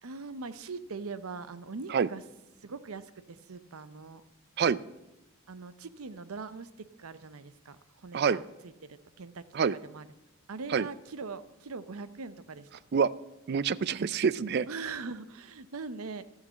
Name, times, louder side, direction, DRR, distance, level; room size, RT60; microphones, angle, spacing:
voice 1, 0.0-2.2 2.6-4.2 5.5-6.7 7.0-9.4 9.7-10.1 10.5-12.7 14.7-16.2, right 4 dB, 80° right, 13 dB, 0.7 m, -41 dB
voice 2, 13.5-14.7, right 6 dB, 50° right, 18 dB, 0.4 m, -26 dB
13.5 x 6.6 x 7.3 m, 1.0 s
head